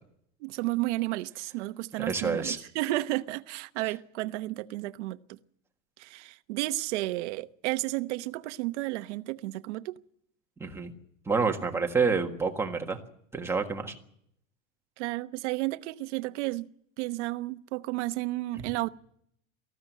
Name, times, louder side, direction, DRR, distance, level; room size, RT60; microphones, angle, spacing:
voice 1, 0.4-5.4 6.0-9.9 15.0-16.7 17.0-18.9, right 19 dB, 60° right, 1.1 m, -32 dB
voice 2, 2.0-2.6 10.6-10.9 11.3-13.0 13.3-13.9 18.6-18.7, right 4 dB, 5° right, 1.6 m, -28 dB
19.0 x 15.0 x 9.2 m
supercardioid pair, 165°, 39 cm